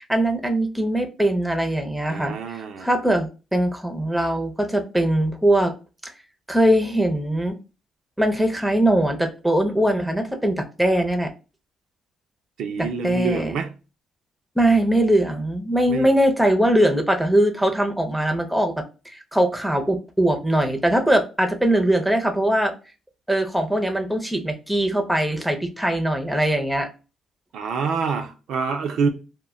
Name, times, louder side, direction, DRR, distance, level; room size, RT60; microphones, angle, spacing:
voice 1, 0.0-5.7 6.0-6.1 6.5-7.5 8.2-11.3 12.8-13.5 14.6-22.7 23.3-26.9, right 1 dB, 5° right, 0.5 m, -21 dB
voice 2, 2.1-2.9 12.6-13.8 15.9-16.1 27.5-29.1, right 5 dB, 75° right, 0.4 m, -26 dB
2.1 x 2.1 x 3.6 m
cardioid pair, 90°, 0 cm